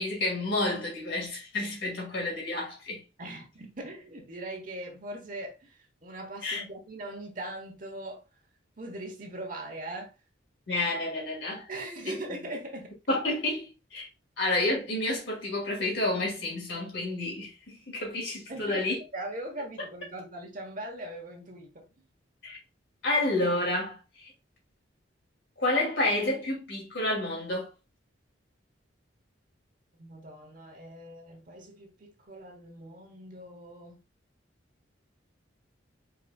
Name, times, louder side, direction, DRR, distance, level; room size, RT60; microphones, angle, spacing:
voice 1, 0.0-3.0 6.4-6.6 10.7-11.7 12.1-12.2 13.1-14.1 14.4-19.0 22.4-22.6 23.0-24.3 25.6-27.7, left 2 dB, 65° left, 2.5 m, -30 dB
voice 2, 3.2-8.2 8.8-10.1 11.7-12.9 18.5-18.8 19.1-21.9 30.0-34.0, right 1 dB, 40° right, 1.2 m, -40 dB
4.9 x 4.0 x 2.3 m
head